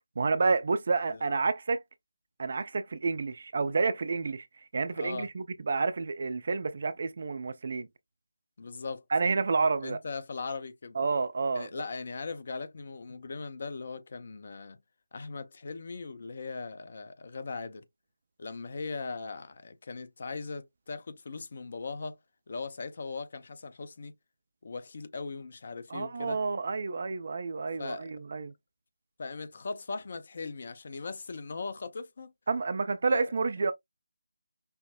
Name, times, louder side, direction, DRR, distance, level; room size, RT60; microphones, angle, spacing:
voice 1, 0.2-1.8 2.4-4.5 4.7-7.9 9.1-10.0 10.9-11.7 25.9-28.5 32.5-33.7, right 4 dB, 40° right, 0.4 m, -29 dB
voice 2, 5.0-5.3 8.6-9.0 9.8-11.0 11.5-14.8 15.1-17.9 18.4-22.2 22.5-24.1 24.6-26.4 27.8-28.1 29.2-32.3 33.1-33.3, left 4 dB, 40° left, 0.6 m, -39 dB
5.5 x 2.0 x 2.3 m
figure-of-eight pair, 155°, 0 cm